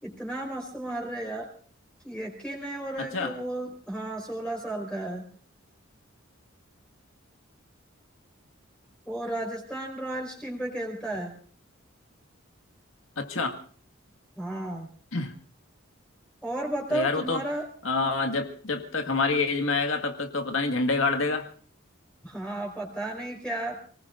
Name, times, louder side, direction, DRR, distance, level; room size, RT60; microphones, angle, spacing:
voice 1, 0.0-1.5 2.0-5.2 9.0-11.3 14.4-14.9 16.4-17.7 22.2-23.8, right 1 dB, 5° left, 0 dB, 4.3 m, -33 dB
voice 2, 3.0-3.3 13.2-13.6 15.1-15.3 16.9-17.4 17.8-21.5, left 3 dB, 75° left, 5 dB, 1.8 m, -27 dB
29.0 x 19.0 x 2.5 m, 0.43 s
head